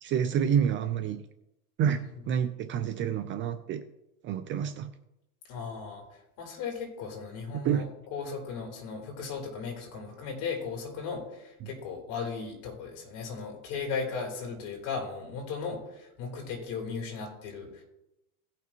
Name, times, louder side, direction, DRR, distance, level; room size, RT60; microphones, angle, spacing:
voice 1, 0.0-1.2 1.8-2.0 2.3-3.8 4.2-4.9 7.5-7.8, right 8 dB, 30° right, 9 dB, 0.4 m, -28 dB
voice 2, 5.5-6.0 6.4-17.8, left 5 dB, 50° left, 0 dB, 3.8 m, -36 dB
17.5 x 5.9 x 3.0 m, 0.90 s
supercardioid pair, 130°, 41 cm